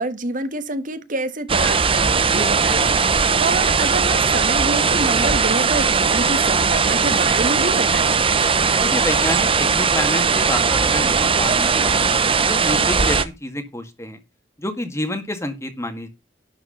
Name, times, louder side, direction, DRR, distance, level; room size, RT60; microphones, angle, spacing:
voice 1, 0.0-8.3, right 2 dB, 50° right, 1.5 m, -27 dB
sound 1, 1.5-13.3, right 5 dB, 30° right, 0.9 m, -18 dB
voice 2, 8.8-14.2 14.6-16.1, left 1 dB, 15° left, 1.9 m, -28 dB
11.5 x 4.8 x 6.5 m
head